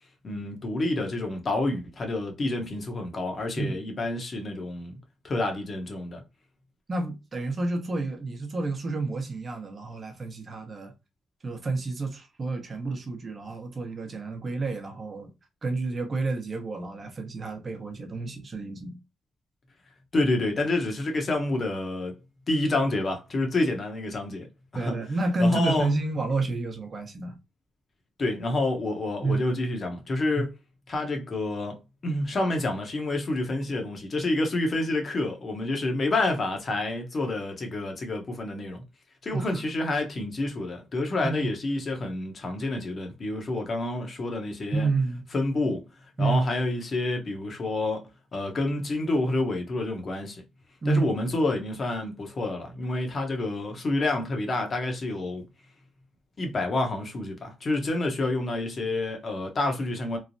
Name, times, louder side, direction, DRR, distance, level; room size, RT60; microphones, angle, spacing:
voice 1, 0.2-5.0 5.2-6.2 20.1-22.1 22.5-24.5 24.7-25.0 25.4-25.9 28.2-30.5 30.9-31.8 32.0-38.8 39.2-44.9 45.3-45.9 46.2-50.4 50.9-55.4 56.4-60.2, left 2 dB, 40° left, 0.8 m, -28 dB
voice 2, 6.9-10.9 11.4-15.3 15.6-19.0 24.7-27.3 29.2-29.4 30.4-30.5 39.3-39.6 41.2-41.5 44.7-45.2 46.2-46.5 50.8-51.1, right 3 dB, 35° right, 0.8 m, -29 dB
3.1 x 2.0 x 2.6 m
cardioid pair, 90°, 0 cm